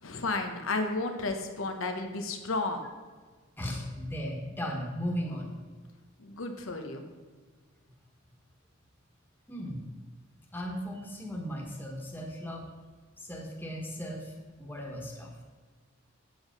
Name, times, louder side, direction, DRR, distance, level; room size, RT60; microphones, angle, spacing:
voice 1, 0.0-2.9 6.2-7.0, left 3 dB, 80° left, 5 dB, 1.1 m, -32 dB
voice 2, 3.6-5.6 9.5-9.8 10.5-12.7 13.2-15.3, equal, 10° left, -1 dB, 1.5 m, -36 dB
8.3 x 7.8 x 5.2 m, 1.4 s
head